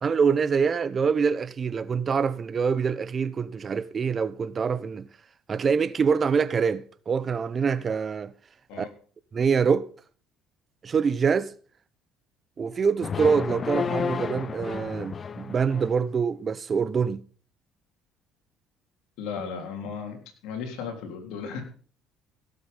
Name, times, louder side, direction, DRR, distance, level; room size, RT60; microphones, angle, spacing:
voice 1, 0.0-5.1 5.5-8.3 8.8-8.9 9.3-9.9 10.8-11.5 12.6-17.2, right 6 dB, 40° right, 0.9 m, -25 dB
sound 1, 13.0-16.0, left 6 dB, 40° left, 0.7 m, -31 dB
voice 2, 19.2-20.2 20.4-21.6, left 6 dB, 75° left, 3.6 m, -35 dB
17.0 x 7.8 x 5.5 m
supercardioid pair, 80°, 0 cm